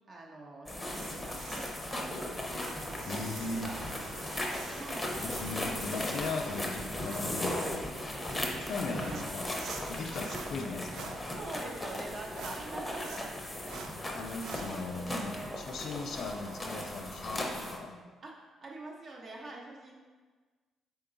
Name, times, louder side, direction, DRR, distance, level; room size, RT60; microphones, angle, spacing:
voice 1, 0.1-2.1 2.8-3.8 4.5-5.2 9.0-9.3 10.1-10.2 11.3-13.3 13.6-13.7 14.5-15.6 18.2-20.0, right 2 dB, 50° right, -2 dB, 0.8 m, -45 dB
sound 1, 0.7-17.8, left 1 dB, 20° left, 0.6 m, -37 dB
sound 2, 0.9-14.8, right 5 dB, 70° right, 0.3 m, -48 dB
voice 2, 3.0-3.8 5.2-7.7 8.4-9.5 9.9-11.1 14.1-18.0, left 3 dB, 65° left, 3 dB, 0.4 m, -38 dB
3.7 x 2.3 x 3.8 m, 1.4 s
supercardioid pair, 65°, 0 cm